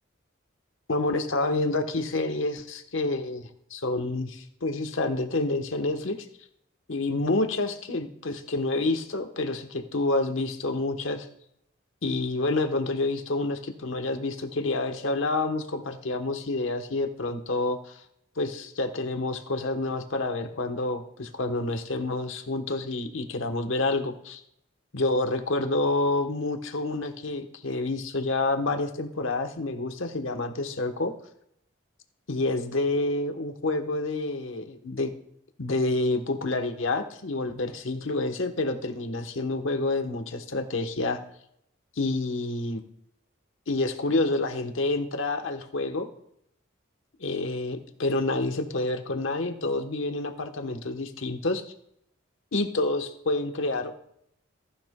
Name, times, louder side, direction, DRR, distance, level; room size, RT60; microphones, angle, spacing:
voice 1, 0.9-6.3 6.9-11.3 12.0-18.0 18.4-24.4 24.9-31.1 32.3-35.1 35.6-41.2 42.0-42.8 43.7-46.1 47.2-51.6 52.5-54.0, left 2 dB, 80° left, 6 dB, 1.1 m, -28 dB
15.0 x 10.0 x 2.2 m, 0.73 s
head